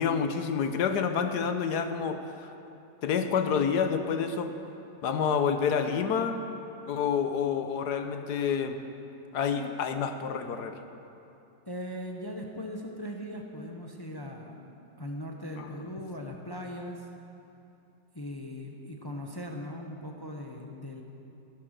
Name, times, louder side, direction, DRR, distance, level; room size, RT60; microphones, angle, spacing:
voice 1, 0.0-2.5 3.0-4.5 5.0-6.4 6.9-8.8 9.3-10.8 15.6-15.7, left 6 dB, 70° left, 8 dB, 1.3 m, -28 dB
voice 2, 11.7-14.7 15.0-17.1 18.1-21.0, equal, 20° left, 1 dB, 0.7 m, -39 dB
15.0 x 11.5 x 6.5 m, 2.8 s
omnidirectional pair, 2.0 m